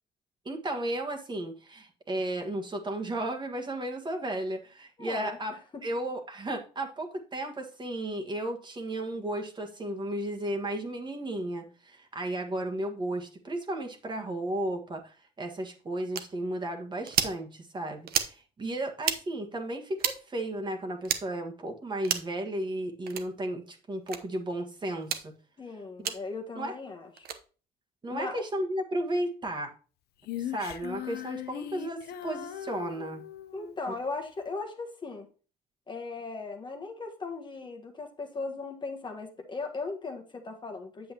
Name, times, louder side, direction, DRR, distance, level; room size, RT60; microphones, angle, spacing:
voice 1, 0.4-5.5 5.8-25.3 26.0-26.1 26.5-26.8 28.0-29.7 30.4-33.2, right 1 dB, 25° right, 4 dB, 1.5 m, -34 dB
voice 2, 5.0-5.8 25.6-27.3 28.1-28.4 33.5-35.3 35.9-41.1, left 3 dB, 25° left, 4 dB, 1.3 m, -38 dB
sound 1, 16.1-16.3 17.1-17.4 18.1-18.3 19.0-19.2 20.0-20.2 21.0-21.2 22.0-22.3 23.1-23.3 24.1-24.2 25.0-25.2 26.0-26.2 27.2-27.4, right 9 dB, 65° right, 0.9 m, -29 dB
Female singing, 30.2-33.8, left 11 dB, 70° left, 0.7 m, -39 dB
8.4 x 7.3 x 2.9 m, 0.36 s
cardioid pair, 110°, 17 cm